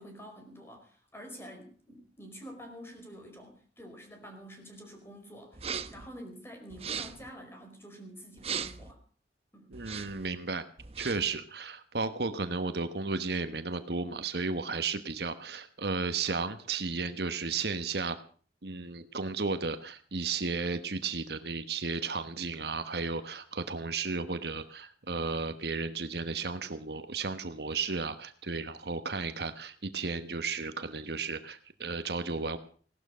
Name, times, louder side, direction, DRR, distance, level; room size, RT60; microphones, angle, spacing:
voice 1, 0.0-9.0 9.5-9.7, equal, 15° left, 3 dB, 5.0 m, -48 dB
sound 1, 5.5-6.1 6.7-7.3 8.4-8.9 9.7-10.3 10.8-11.3, right 7 dB, 35° right, 0.8 m, -38 dB
voice 2, 9.7-10.6 11.0-18.2 18.6-32.6, right 4 dB, 65° right, 10 dB, 1.3 m, -34 dB
18.0 x 12.5 x 6.3 m, 0.44 s
head